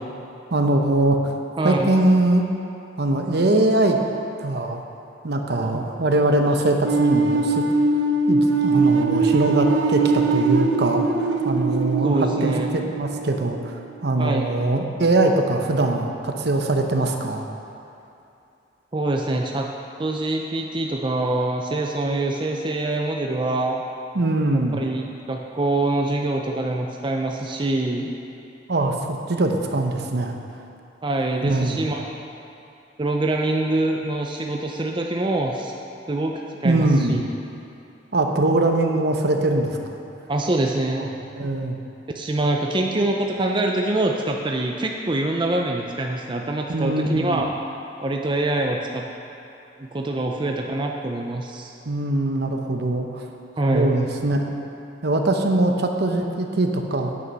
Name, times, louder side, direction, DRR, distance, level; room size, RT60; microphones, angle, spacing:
voice 1, 0.5-1.2 1.6-2.5 3.0-4.0 4.4-4.8 5.2-7.6 8.3-17.5 24.1-24.8 28.7-30.4 31.5-31.9 36.6-37.2 38.1-40.0 41.0-41.8 46.7-47.4 51.8-53.3 53.7-54.4 55.0-57.1, right 2 dB, 60° right, 3 dB, 0.9 m, -22 dB
voice 2, 1.6-1.9 5.7-5.9 12.0-12.7 14.2-14.5 18.9-19.7 20.0-23.8 24.7-28.1 31.0-32.1 33.0-35.7 36.1-37.2 40.3-41.1 42.1-47.5 48.0-49.0 49.8-51.7 53.6-53.9, right 2 dB, 25° right, 1 dB, 0.6 m, -24 dB
sound 1, 6.8-13.7, right 3 dB, 90° right, 0.8 m, -21 dB
9.5 x 8.6 x 5.4 m, 2.7 s
head